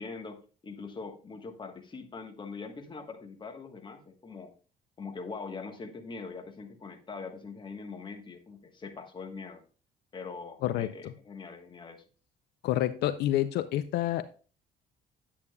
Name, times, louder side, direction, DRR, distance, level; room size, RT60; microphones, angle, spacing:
voice 1, 0.0-4.5 5.0-9.6 10.1-12.0, left 4 dB, 30° left, 6 dB, 1.2 m, -42 dB
voice 2, 12.6-14.2, left 13 dB, 75° left, 13 dB, 0.4 m, -28 dB
8.5 x 8.5 x 2.2 m, 0.38 s
cardioid pair, 110°, 17 cm